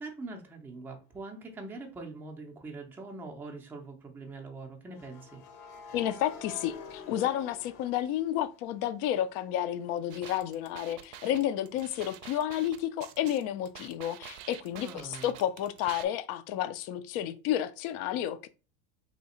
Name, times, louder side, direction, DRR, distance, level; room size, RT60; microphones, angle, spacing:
voice 1, 0.0-5.4 14.7-15.3, right 3 dB, 5° right, 0.4 m, -43 dB
sound 1, 1.6-1.8 4.9-8.8 9.2-12.8, left 5 dB, 85° left, 1.2 m, -50 dB
voice 2, 5.9-18.5, left 11 dB, 50° left, 0.4 m, -31 dB
sound 2, 10.1-16.0, right 11 dB, 65° right, 0.5 m, -47 dB
3.3 x 2.8 x 4.2 m
cardioid pair, 165°, 34 cm